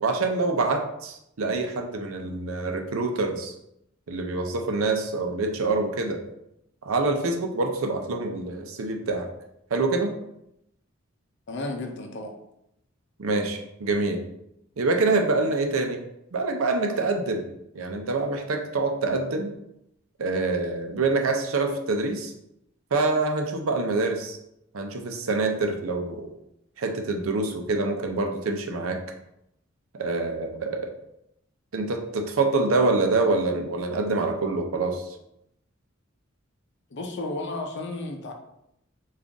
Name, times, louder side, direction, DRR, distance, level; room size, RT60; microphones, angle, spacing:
voice 1, 0.0-3.5 4.1-6.2 6.9-9.3 9.7-10.1 13.2-14.2 14.8-16.0 16.3-17.5 17.7-19.5 20.2-22.3 22.9-24.4 24.7-26.3 26.8-29.0 30.0-30.9 31.7-35.0, right 3 dB, 90° right, 4 dB, 0.6 m, -26 dB
voice 2, 11.5-12.3 36.9-38.3, left 2 dB, 60° left, 3 dB, 0.6 m, -33 dB
3.8 x 2.5 x 3.5 m, 0.81 s
head